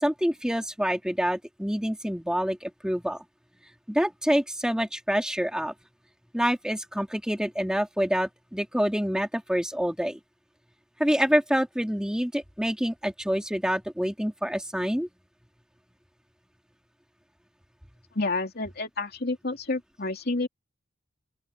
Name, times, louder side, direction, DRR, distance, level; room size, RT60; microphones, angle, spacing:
voice 1, 0.0-3.2 3.9-5.7 6.3-10.2 11.0-15.1, equal, 5° right, 2.6 m, -27 dB
voice 2, 18.1-20.5, left 2 dB, 50° left, 3.0 m, -29 dB
open air
head